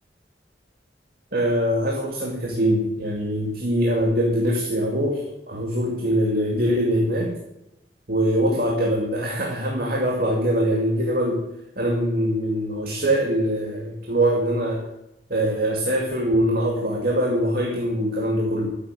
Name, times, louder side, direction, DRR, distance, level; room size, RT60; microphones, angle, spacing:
voice 1, 1.3-7.3 8.1-11.4 11.8-14.8 15.3-18.7, equal, 55° right, -1 dB, 2.4 m, -23 dB
13.5 x 8.7 x 9.7 m, 0.89 s
head